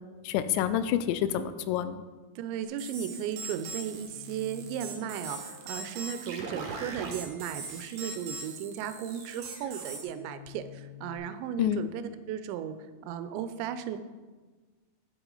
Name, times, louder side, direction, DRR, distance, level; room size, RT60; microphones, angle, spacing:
voice 1, 0.2-2.0 11.6-11.8, left 11 dB, 90° left, 12 dB, 2.8 m, -28 dB
voice 2, 2.4-12.0 12.3-12.8 13.0-14.0, right 9 dB, 90° right, 11 dB, 2.9 m, -35 dB
sound 1, 2.8-10.0, right 4 dB, 70° right, 2.3 m, -40 dB
sound 2, 4.0-11.2, left 6 dB, 30° left, 3.2 m, -52 dB
8.9 x 8.0 x 3.9 m, 1.3 s
omnidirectional pair, 5.1 m